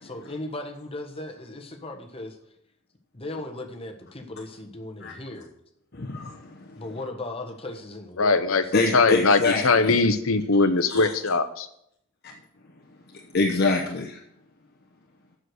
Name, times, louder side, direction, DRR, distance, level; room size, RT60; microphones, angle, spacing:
voice 1, 0.0-2.4 3.1-5.5 6.8-9.2, left 2 dB, 30° left, 3 dB, 1.3 m, -37 dB
voice 2, 5.9-6.8 8.7-10.0 10.9-11.1 12.2-12.3 13.3-14.2, left 3 dB, 50° left, 1 dB, 0.9 m, -25 dB
voice 3, 8.2-8.6 8.9-11.7, left 3 dB, 85° left, 10 dB, 0.9 m, -21 dB
7.7 x 6.5 x 7.8 m, 0.75 s
head